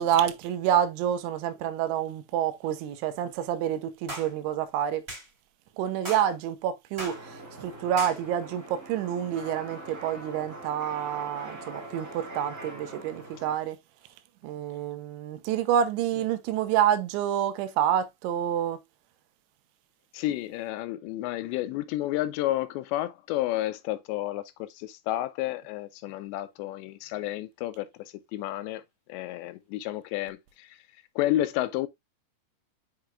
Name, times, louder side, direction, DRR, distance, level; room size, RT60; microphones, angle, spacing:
voice 1, 0.0-5.0 5.8-13.8 14.4-18.8, right 10 dB, 90° right, 3.2 m, -28 dB
sound 1, 4.1-4.3 5.1-5.3 6.0-6.3 7.0-7.2 8.0-8.2, equal, 15° right, 2.7 m, -37 dB
sound 2, 7.0-13.6, right 2 dB, 45° right, 1.0 m, -43 dB
voice 2, 20.1-28.8 29.1-30.8 31.2-31.9, left 14 dB, 80° left, 2.7 m, -31 dB
7.8 x 5.6 x 2.3 m
omnidirectional pair, 5.3 m